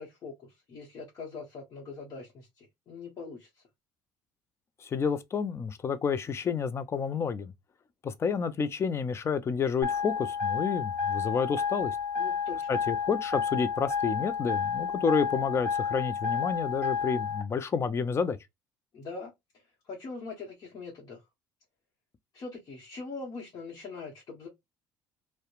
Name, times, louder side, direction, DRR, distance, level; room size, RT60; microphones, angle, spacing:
voice 1, 0.0-3.5 12.2-12.8 18.9-19.3 19.9-21.2 22.3-24.5, left 4 dB, 50° left, 1.0 m, -42 dB
voice 2, 4.8-7.5 8.0-12.0 12.7-18.4, left 6 dB, 35° left, 0.5 m, -30 dB
sound 1, 9.8-17.4, left 6 dB, ahead, 1.5 m, -31 dB
2.7 x 2.1 x 2.3 m
supercardioid pair, 85°, 8 cm